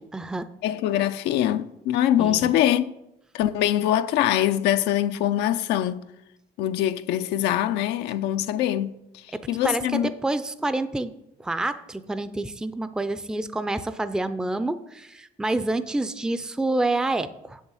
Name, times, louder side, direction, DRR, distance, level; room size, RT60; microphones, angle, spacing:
voice 1, 0.0-0.5 2.2-2.5 9.3-11.1 11.4-17.6, right 2 dB, 5° right, 0.5 m, -28 dB
voice 2, 0.6-2.8 3.3-6.0 6.6-9.2 9.5-10.1, left 12 dB, 85° left, 0.5 m, -23 dB
8.0 x 6.4 x 7.1 m
cardioid pair, 110°, 17 cm